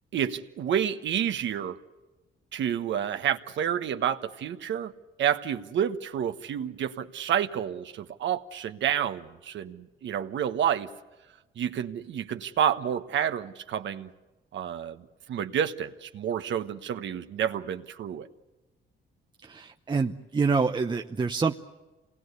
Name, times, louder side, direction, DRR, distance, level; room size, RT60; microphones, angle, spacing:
voice 1, 0.1-1.8 2.5-4.9 5.2-10.9 11.6-14.1 14.5-18.3, right 9 dB, 70° right, 8 dB, 1.2 m, -29 dB
voice 2, 19.5-21.5, right 4 dB, 25° right, 5 dB, 0.8 m, -26 dB
26.5 x 19.5 x 8.2 m, 1.1 s
cardioid pair, 90°, 20 cm